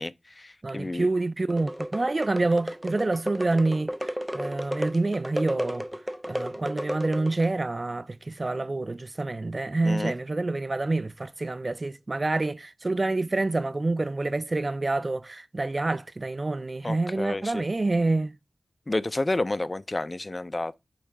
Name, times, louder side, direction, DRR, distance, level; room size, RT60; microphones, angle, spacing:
voice 1, 0.0-1.1 9.8-10.1 16.8-17.6 18.9-20.7, left 2 dB, 30° left, 0.5 m, -30 dB
voice 2, 0.6-5.9 6.3-18.4, right 2 dB, 40° right, 0.4 m, -27 dB
sound 1, 1.5-7.6, equal, 5° right, 0.8 m, -33 dB
8.6 x 3.1 x 4.5 m
wide cardioid pair, 60°, 0 cm